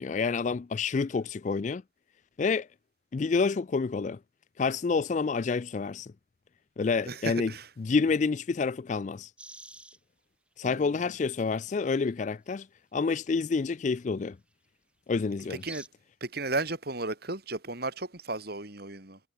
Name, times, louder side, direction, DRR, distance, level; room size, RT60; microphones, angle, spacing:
voice 1, 0.0-1.8 2.4-2.7 3.1-4.2 4.6-6.1 6.8-7.5 7.8-9.3 10.6-12.7 12.9-14.4 15.1-15.6, left 4 dB, 40° left, 0.3 m, -28 dB
voice 2, 7.0-7.7 10.6-10.9 15.5-15.9 16.2-19.2, right 2 dB, 55° right, 3.0 m, -34 dB
sound 1, 9.4-10.0 10.9-11.0 11.2-12.1 13.4-13.5 15.4-15.9, right 2 dB, 5° right, 4.7 m, -48 dB
head